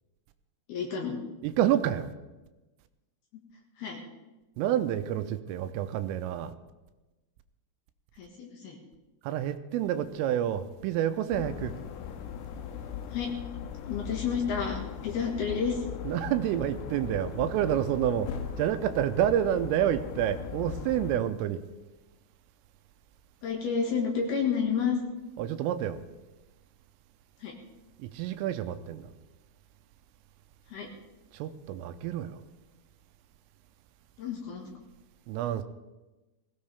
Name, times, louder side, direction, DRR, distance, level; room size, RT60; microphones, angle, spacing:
voice 1, 0.7-1.2 3.8-4.0 8.1-8.8 13.1-13.3 13.8-15.8 23.4-25.0 27.4-27.5 30.7-30.9 34.2-34.7, left 6 dB, 60° left, 0 dB, 3.2 m, -30 dB
voice 2, 1.4-2.1 4.6-6.5 9.3-11.7 16.1-18.3 18.6-21.6 25.4-26.0 28.0-29.1 31.3-32.4 35.3-35.6, right 11 dB, 85° right, 9 dB, 3.3 m, -28 dB
sound 1, 11.3-21.2, left 8 dB, 80° left, 3.4 m, -39 dB
20.5 x 16.5 x 3.5 m, 1.1 s
omnidirectional pair, 5.9 m